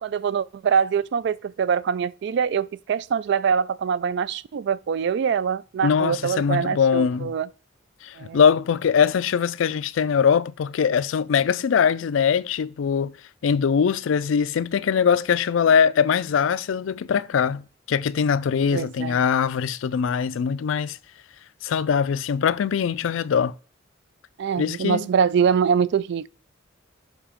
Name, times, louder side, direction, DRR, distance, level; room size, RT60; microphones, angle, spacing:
voice 1, 0.0-7.5 8.2-8.4 18.7-19.2 24.4-26.3, right 7 dB, 60° right, 0.3 m, -24 dB
voice 2, 5.8-7.3 8.0-13.1 13.4-21.0 21.6-23.5 24.6-25.1, left 7 dB, 80° left, 0.4 m, -22 dB
7.3 x 2.9 x 5.0 m
head